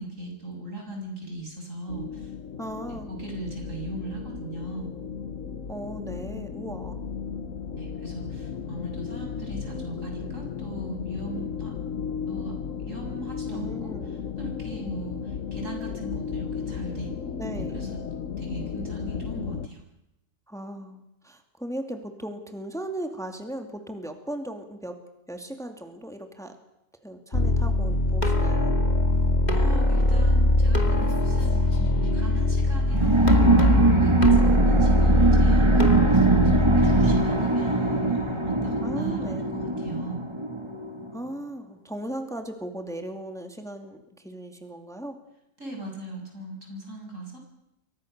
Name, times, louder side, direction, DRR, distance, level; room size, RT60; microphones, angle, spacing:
voice 1, 0.0-2.7 3.1-4.9 7.8-11.7 12.3-12.6 12.8-17.3 17.5-17.9 18.4-19.8 29.5-40.2 45.6-47.4, right 1 dB, 75° right, 2 dB, 7.3 m, -39 dB
sound 1, 1.9-19.7, left 6 dB, 75° left, 1.5 m, -35 dB
voice 2, 2.6-3.1 5.7-7.0 13.5-14.1 17.4-17.9 20.5-25.0 25.3-26.5 27.0-28.7 38.8-39.5 41.1-45.2, right 1 dB, ahead, 5 dB, 2.4 m, -37 dB
sound 2, 27.3-37.2, left 2 dB, 35° left, 2.4 m, -21 dB
sound 3, 32.9-41.1, right 3 dB, 20° right, 2.4 m, -22 dB
28.5 x 23.5 x 6.7 m, 0.88 s
omnidirectional pair, 1.3 m